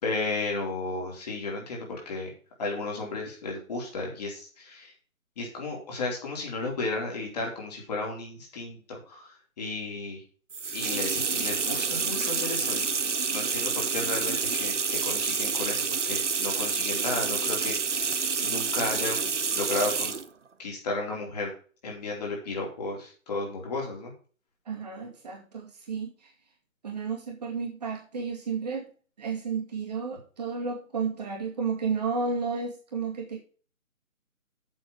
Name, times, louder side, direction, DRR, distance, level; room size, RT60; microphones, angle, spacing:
voice 1, 0.0-2.3 2.6-4.9 5.4-10.2 10.7-12.9 13.3-19.3 19.6-20.1 20.6-21.5 21.8-24.1, left 3 dB, 30° left, -1 dB, 4.0 m, -33 dB
sound 1, 10.5-20.3, right 5 dB, 60° right, 0.9 m, -28 dB
voice 2, 24.7-26.3 26.8-28.9 29.2-33.4, right 5 dB, 30° right, -1 dB, 2.2 m, -32 dB
7.9 x 7.1 x 6.2 m, 0.40 s
figure-of-eight pair, 150°, 41 cm